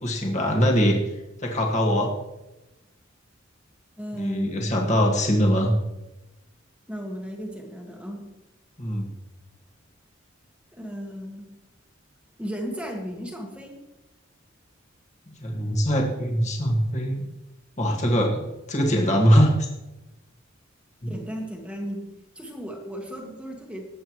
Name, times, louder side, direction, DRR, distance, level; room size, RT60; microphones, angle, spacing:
voice 1, 0.0-1.0 1.4-2.1 4.1-5.7 8.8-9.1 15.4-17.2 17.8-18.4 18.7-19.5 21.0-21.1, equal, 35° left, 1 dB, 1.8 m, -22 dB
voice 2, 4.0-4.6 6.9-8.3 10.7-11.5 12.4-13.7 21.1-22.1 22.3-23.9, equal, 5° right, 1 dB, 1.4 m, -35 dB
19.5 x 7.8 x 3.1 m, 0.99 s
head